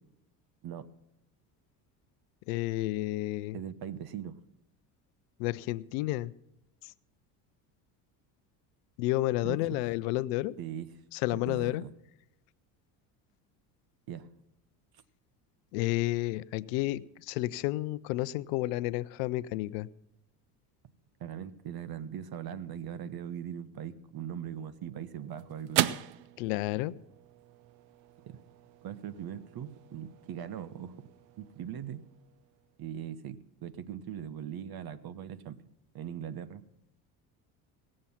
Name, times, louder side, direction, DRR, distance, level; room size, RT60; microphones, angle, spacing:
voice 1, 2.5-3.6 5.4-6.3 9.0-10.5 11.1-11.8 15.7-19.9 26.4-26.9, left 17 dB, 75° left, 18 dB, 0.7 m, -31 dB
voice 2, 3.5-4.4 9.4-9.6 10.6-10.9 11.3-11.9 14.1-14.3 21.2-25.8 28.2-28.4 28.8-31.1 31.4-32.0 32.8-35.6 35.9-36.6, right 9 dB, 50° right, 15 dB, 1.1 m, -40 dB
sound 1, 24.5-33.0, right 14 dB, 85° right, 0.7 m, -39 dB
18.5 x 7.7 x 5.7 m, 0.87 s
hypercardioid pair, 75°, 48 cm